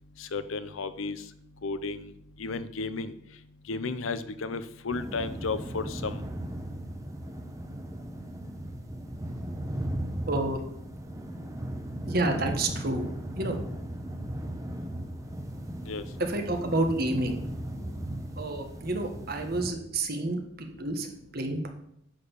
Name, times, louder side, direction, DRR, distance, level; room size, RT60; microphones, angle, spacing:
voice 1, 0.2-1.3 1.6-6.2 15.8-16.2 17.8-18.1, left 4 dB, 90° left, 12 dB, 0.7 m, -34 dB
sound 1, 4.9-19.7, right 1 dB, 15° right, 0.9 m, -37 dB
voice 2, 10.3-10.6 12.1-13.1 13.4-13.6 16.2-17.4 18.4-21.1 21.3-21.7, right 2 dB, 50° right, 5 dB, 1.3 m, -29 dB
9.5 x 4.6 x 6.9 m, 0.73 s
head